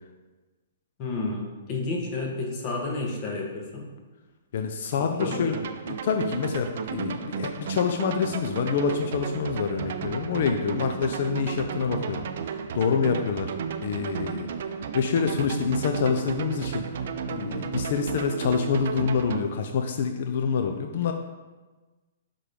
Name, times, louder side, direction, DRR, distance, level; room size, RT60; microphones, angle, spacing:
voice 1, 1.0-3.8 5.0-5.5, left 3 dB, 35° left, -1 dB, 1.4 m, -31 dB
voice 2, 4.5-5.6 5.9-12.3 12.7-13.5 13.8-14.5 14.9-16.9 17.3-21.1, left 6 dB, 60° left, 5 dB, 0.5 m, -26 dB
sound 1, 5.2-19.4, right 7 dB, 60° right, 0.5 m, -33 dB
6.4 x 3.8 x 5.0 m, 1.2 s
hypercardioid pair, 130°, 0 cm